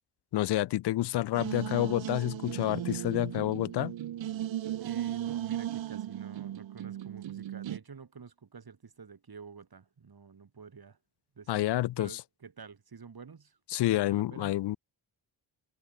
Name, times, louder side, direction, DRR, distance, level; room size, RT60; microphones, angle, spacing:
voice 1, 0.3-3.9 11.5-12.1 13.7-14.8, left 15 dB, 55° left, 0.5 m, -29 dB
sound 1, 1.3-7.8, right 12 dB, 65° right, 0.9 m, -36 dB
voice 2, 4.8-11.0 11.3-13.6 13.9-14.6, right 5 dB, 50° right, 2.5 m, -49 dB
supercardioid pair, 45°, 48 cm